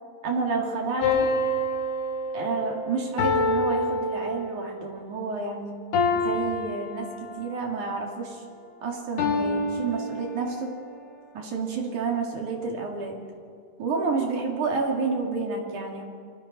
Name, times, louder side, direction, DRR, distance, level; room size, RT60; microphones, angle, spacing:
voice 1, 0.2-1.3 2.3-5.8 6.1-7.1 7.3-8.4 8.8-10.8 11.3-13.2 13.8-16.0, right 4 dB, 50° right, 0 dB, 3.6 m, -29 dB
sound 1, 1.0-4.8 5.9-7.5 9.2-10.7, left 2 dB, 70° left, 4.3 m, -27 dB
28.5 x 24.0 x 4.3 m, 2.2 s
omnidirectional pair, 4.8 m